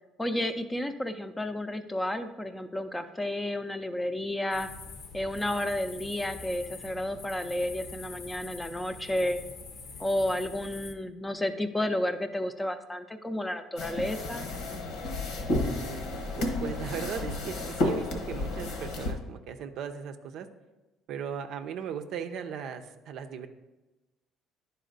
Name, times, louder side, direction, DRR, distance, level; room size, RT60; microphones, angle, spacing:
voice 1, 0.2-4.7 5.1-9.4 10.0-14.5, left 1 dB, 10° left, 9 dB, 0.5 m, -31 dB
sound 1, 4.5-10.9, left 4 dB, 65° left, 0.8 m, -45 dB
sound 2, 13.8-19.1, left 2 dB, 85° left, 1.2 m, -32 dB
voice 2, 15.5-16.0 16.4-20.5 21.1-23.5, right 7 dB, 70° right, 7 dB, 0.5 m, -38 dB
10.5 x 4.2 x 4.0 m, 1.1 s
cardioid pair, 95°, 0 cm